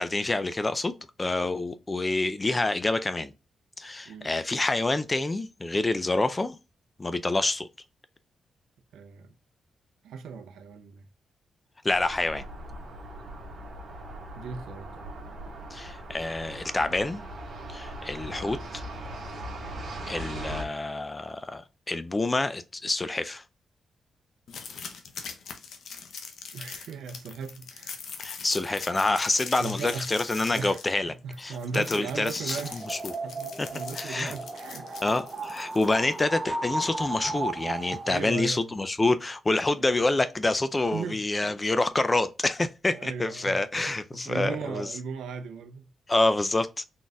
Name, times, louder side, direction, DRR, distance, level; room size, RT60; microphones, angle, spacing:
voice 1, 0.0-3.3 3.8-6.6 7.0-7.7 11.8-12.4 15.7-17.2 17.7-18.8 20.1-23.4 28.2-32.6 32.9-33.1 33.6-33.7 33.9-34.3 35.0-44.9 46.1-46.8, left 2 dB, 25° left, 0.4 m, -27 dB
voice 2, 8.9-9.3 10.0-11.1 14.3-15.1 26.5-28.0 29.6-32.9 33.2-35.0 38.1-38.7 39.8-39.9 40.8-41.2 42.9-43.6 43.8-45.9, right 5 dB, 90° right, 0.5 m, -37 dB
sound 1, 11.9-20.6, right 1 dB, 65° right, 1.3 m, -40 dB
sound 2, 24.5-36.2, left 6 dB, 75° left, 0.8 m, -42 dB
sound 3, 32.4-38.2, right 2 dB, 40° right, 1.0 m, -35 dB
3.9 x 3.8 x 2.3 m
cardioid pair, 80°, 0 cm